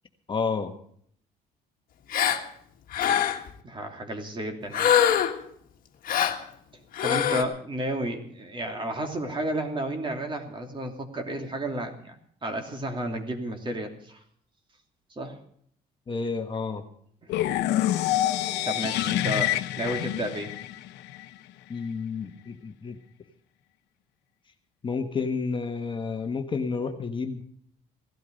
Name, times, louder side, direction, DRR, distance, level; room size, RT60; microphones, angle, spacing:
voice 1, 0.3-0.7 16.1-16.8 21.7-23.0 24.8-27.4, left 5 dB, 30° left, 5 dB, 1.4 m, -30 dB
Gasp, 2.1-2.4 2.9-3.5 4.7-5.4 6.1-6.4 6.9-7.4, left 9 dB, 55° left, 1.6 m, -23 dB
voice 2, 3.6-4.9 7.0-12.1 12.4-14.2 15.1-15.4 17.2-17.3 18.6-20.6, right 1 dB, 30° right, 4 dB, 2.8 m, -32 dB
sound 1, 17.3-21.3, left 13 dB, 85° left, 0.8 m, -27 dB
17.0 x 12.5 x 5.2 m, 0.63 s
cardioid pair, 110°, 17 cm